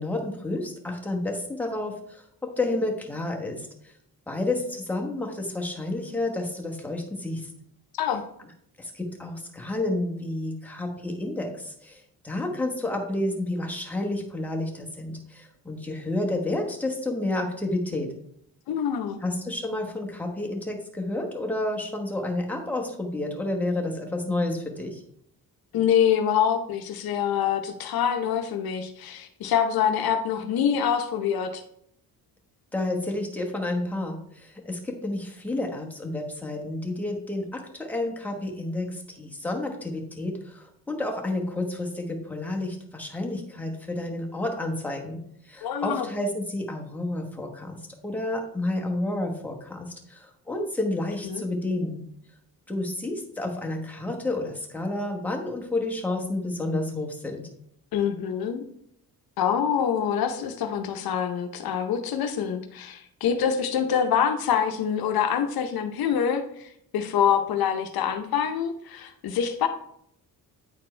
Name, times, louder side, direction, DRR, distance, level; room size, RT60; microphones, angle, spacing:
voice 1, 0.0-2.3 2.6-3.9 4.3-7.5 8.8-18.1 19.2-25.0 32.7-52.0 52.7-57.5, left 2 dB, 5° left, 1 dB, 1.1 m, -30 dB
voice 2, 18.7-19.2 25.7-31.6 45.6-46.1 51.2-51.4 57.9-58.6 59.4-69.7, left 8 dB, 75° left, 7 dB, 0.7 m, -25 dB
9.0 x 4.3 x 3.2 m, 0.71 s
cardioid pair, 125°, 37 cm